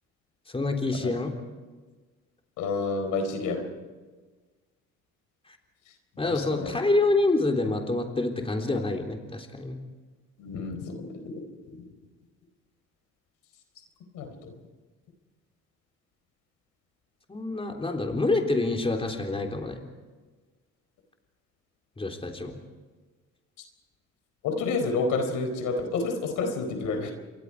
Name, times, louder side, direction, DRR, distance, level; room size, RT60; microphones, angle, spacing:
voice 1, 0.5-1.3 6.2-9.8 17.3-19.8 22.0-22.6, left 2 dB, 20° left, 2 dB, 3.6 m, -27 dB
voice 2, 2.6-3.6 6.2-6.7 10.4-11.4 14.1-14.5 24.4-27.1, left 3 dB, 90° left, 6 dB, 4.3 m, -29 dB
28.0 x 23.0 x 4.9 m, 1.4 s
cardioid pair, 90°, 30 cm